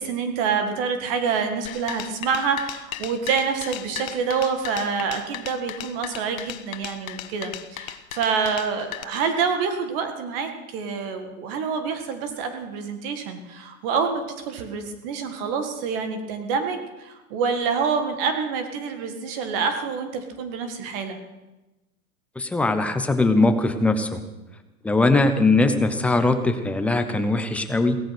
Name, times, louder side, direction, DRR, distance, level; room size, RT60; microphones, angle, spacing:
voice 1, 0.0-21.2, right 5 dB, 40° right, 7 dB, 1.9 m, -27 dB
sound 1, 1.7-9.0, left 12 dB, 75° left, 1.3 m, -36 dB
voice 2, 22.4-24.2 24.8-28.0, left 2 dB, 5° left, 8 dB, 0.5 m, -21 dB
17.0 x 14.0 x 6.0 m, 1.0 s
supercardioid pair, 155°, 42 cm